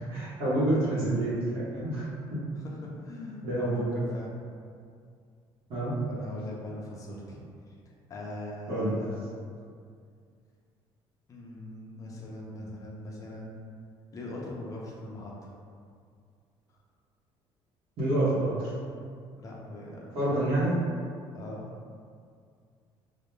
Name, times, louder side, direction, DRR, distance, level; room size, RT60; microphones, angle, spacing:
voice 1, 0.1-2.1 3.4-3.9 5.7-6.0 8.7-9.0 18.0-18.7 20.1-20.7, right 1 dB, 60° right, -11 dB, 0.8 m, -27 dB
voice 2, 2.5-4.5 6.0-7.4 7.7-7.8 8.1-9.2 11.3-13.7 14.1-15.3 19.4-20.5 21.3-21.7, left 1 dB, 35° left, -3 dB, 0.5 m, -41 dB
2.2 x 2.1 x 3.0 m, 2.2 s
cardioid pair, 135°, 10 cm